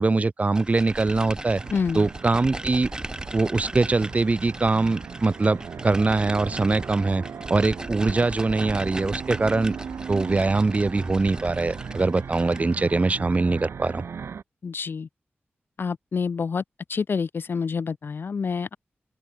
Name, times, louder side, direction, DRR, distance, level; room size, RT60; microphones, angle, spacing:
voice 1, 0.0-1.6 1.9-2.9 3.3-7.2 7.5-9.7 10.1-14.0, right 3 dB, 35° right, 0.7 m, -23 dB
sound 1, 0.6-12.9, right 2 dB, 20° right, 1.2 m, -37 dB
sound 2, 1.5-14.4, right 6 dB, 80° right, 0.7 m, -38 dB
voice 2, 1.7-2.1 14.6-15.1 15.8-16.6 16.9-18.8, left 5 dB, 55° left, 0.4 m, -27 dB
open air
wide cardioid pair, 100°, 4 cm